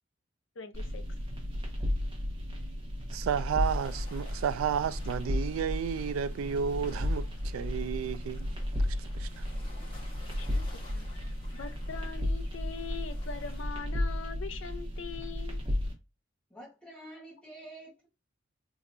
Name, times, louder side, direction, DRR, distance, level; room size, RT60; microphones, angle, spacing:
voice 1, 0.6-1.0 10.4-11.1 11.5-15.6, left 5 dB, 70° left, 0.5 m, -42 dB
sound 1, 0.7-15.9, left 1 dB, 25° right, 1.1 m, -34 dB
voice 2, 3.1-8.5 8.8-9.4, right 7 dB, 85° right, 0.3 m, -32 dB
sound 2, 3.6-13.6, left 2 dB, 25° left, 1.2 m, -55 dB
voice 3, 16.5-18.1, right 1 dB, 5° left, 1.1 m, -48 dB
3.7 x 2.8 x 2.6 m
head